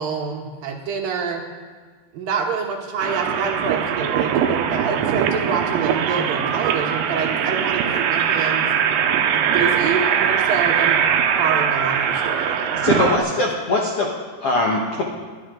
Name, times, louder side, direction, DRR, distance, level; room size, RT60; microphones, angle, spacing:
voice 1, 0.0-1.4 2.1-8.7 9.3-11.0 11.4-13.0 13.3-13.4, right 6 dB, 65° right, 1 dB, 2.7 m, -27 dB
sound 1, 3.0-13.2, right 8 dB, 90° right, 3.1 m, -21 dB
voice 2, 12.8-14.1 14.4-15.0, left 2 dB, 75° left, -1 dB, 1.3 m, -21 dB
21.5 x 13.0 x 3.9 m, 1.5 s
omnidirectional pair, 4.9 m